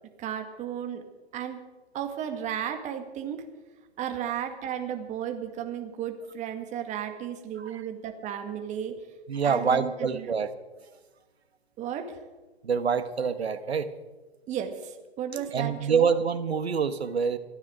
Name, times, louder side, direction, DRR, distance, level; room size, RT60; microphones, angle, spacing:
voice 1, 0.2-1.1 1.3-1.7 1.9-3.5 4.0-9.0 9.4-10.3 11.8-12.2 14.5-16.1, right 9 dB, 20° right, 6 dB, 1.8 m, -34 dB
voice 2, 9.3-10.5 10.8-10.9 12.6-13.9 15.3-17.4, right 6 dB, 75° right, 11 dB, 1.3 m, -26 dB
26.5 x 9.8 x 5.1 m, 1.2 s
figure-of-eight pair, 120°, 32 cm